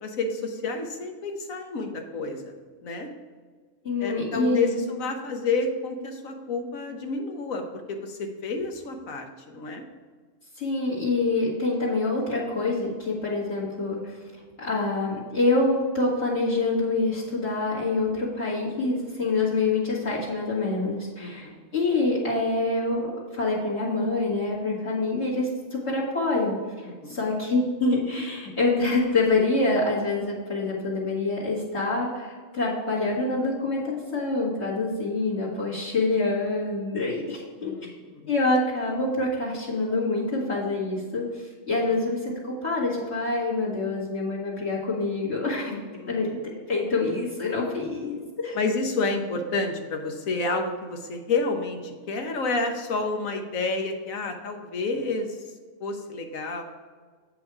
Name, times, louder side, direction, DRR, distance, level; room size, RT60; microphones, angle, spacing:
voice 1, 0.0-2.5 2.8-3.1 4.0-9.8 21.2-21.6 26.9-27.2 37.6-38.3 41.9-42.0 45.7-46.3 48.5-55.3 55.8-56.6, left 3 dB, 80° left, 4 dB, 1.4 m, -30 dB
voice 2, 3.8-4.8 10.6-14.2 14.6-23.0 23.3-26.6 27.1-37.7 38.3-41.3 41.7-45.7 46.1-46.4 46.7-48.6, left 3 dB, 55° left, -7 dB, 2.2 m, -26 dB
8.0 x 5.4 x 4.8 m, 1.5 s
omnidirectional pair, 1.4 m